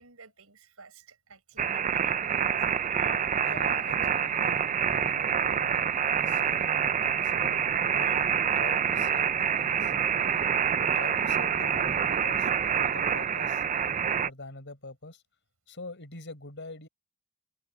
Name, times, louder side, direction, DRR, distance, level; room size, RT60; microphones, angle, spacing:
voice 1, 0.0-3.2 3.7-4.0, right 4 dB, 70° right, 7.4 m, -53 dB
sound 1, 1.6-14.3, right 7 dB, 35° right, 0.5 m, -27 dB
voice 2, 3.4-9.9 10.4-12.5 12.8-13.6 14.2-15.2 15.7-16.9, left 2 dB, 55° left, 6.9 m, -45 dB
open air
head